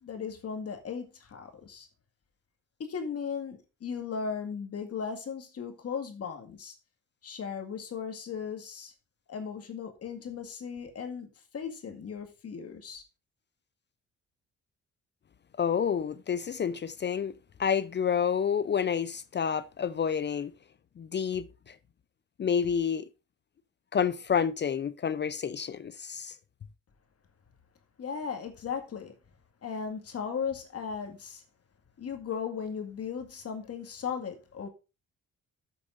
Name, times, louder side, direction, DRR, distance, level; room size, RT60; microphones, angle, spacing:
voice 1, 0.0-1.9 2.8-6.8 7.2-8.9 9.3-13.0 28.0-29.1 29.6-31.4 32.0-34.7, left 6 dB, 50° left, 2.0 m, -37 dB
voice 2, 15.6-17.3 17.6-20.5 21.0-21.8 22.4-23.1 23.9-26.4, left 7 dB, 35° left, 0.6 m, -29 dB
12.5 x 6.9 x 2.6 m
cardioid pair, 90°, 30 cm